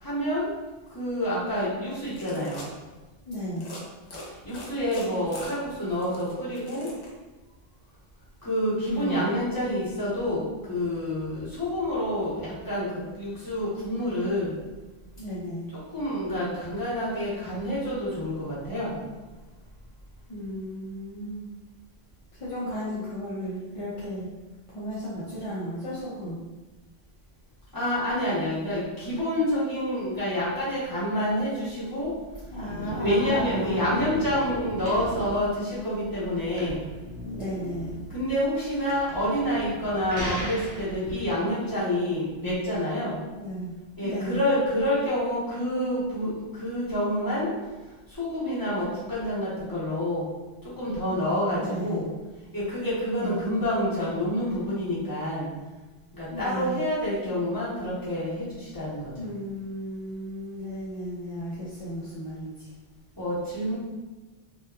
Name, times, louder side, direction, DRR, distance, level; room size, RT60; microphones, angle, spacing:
voice 1, 0.0-0.5 0.9-2.6 4.4-6.9 8.4-14.5 15.9-19.0 27.7-32.1 32.8-36.8 38.1-43.2 44.0-47.5 48.2-50.2 50.8-52.1 52.5-55.5 56.2-59.1 63.2-63.8, left 1 dB, 20° left, -9 dB, 0.9 m, -28 dB
sound 1, 1.9-2.7 3.5-3.8 4.1-7.1, left 1 dB, 75° left, 0.9 m, -42 dB
voice 2, 3.3-3.7 8.8-9.3 15.2-15.6 20.3-21.5 22.4-24.3 24.7-26.4 32.5-34.0 37.2-37.9 43.4-43.7 44.0-44.4 51.6-52.0 53.1-53.4 56.3-56.8 59.1-62.7, equal, 45° left, -9 dB, 0.4 m, -34 dB
sound 2, 32.0-41.3, equal, 60° right, 0.9 m, -37 dB
2.8 x 2.3 x 2.3 m, 1.2 s
omnidirectional pair, 1.1 m